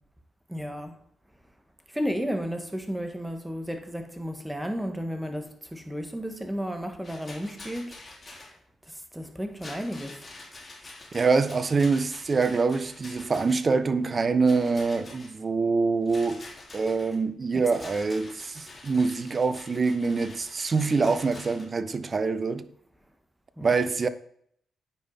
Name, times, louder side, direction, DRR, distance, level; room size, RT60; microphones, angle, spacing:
voice 1, 0.5-0.9 1.9-7.9 9.1-10.2 17.5-17.6 23.6-23.7, equal, 5° right, 1.6 m, -33 dB
Rattle, 7.0-8.5 9.5-13.7 14.4-15.3 16.1-17.2 17.7-21.7, left 2 dB, 40° left, 3.1 m, -46 dB
voice 2, 11.1-16.4 16.7-22.6 23.6-24.1, right 4 dB, 45° right, 0.7 m, -25 dB
9.3 x 5.3 x 4.0 m
supercardioid pair, 55°, 0 cm